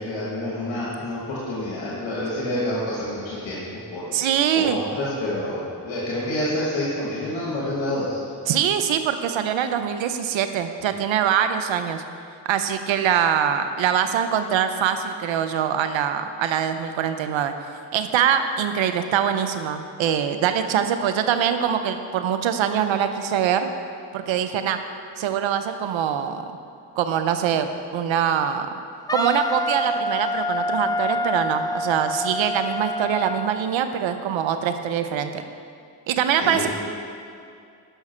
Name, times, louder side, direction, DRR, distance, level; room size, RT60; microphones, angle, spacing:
voice 1, 0.0-4.0 4.5-8.2 36.4-36.7, left 1 dB, 85° left, -7 dB, 1.6 m, -28 dB
voice 2, 4.1-4.8 8.5-12.0 12.5-17.5 17.9-23.7 24.1-24.8 25.2-26.4 27.0-28.7 29.1-35.4 36.1-36.7, right 9 dB, 85° right, 9 dB, 0.7 m, -23 dB
Wind instrument woodwind instrument, 29.1-33.5, left 1 dB, 10° left, 0.5 m, -26 dB
12.5 x 5.9 x 4.4 m, 2.4 s
supercardioid pair, 40°, 45 cm